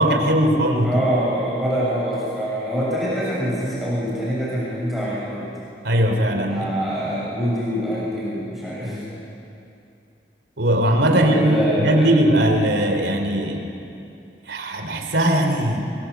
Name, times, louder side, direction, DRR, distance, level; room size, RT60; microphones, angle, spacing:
voice 1, 0.0-1.0 5.8-7.2 10.6-13.7 14.5-15.8, right 1 dB, 85° right, 4 dB, 3.4 m, -19 dB
voice 2, 0.8-5.4 6.5-9.1 11.1-12.1, equal, ahead, -8 dB, 7.0 m, -25 dB
24.0 x 22.5 x 8.2 m, 2.6 s
head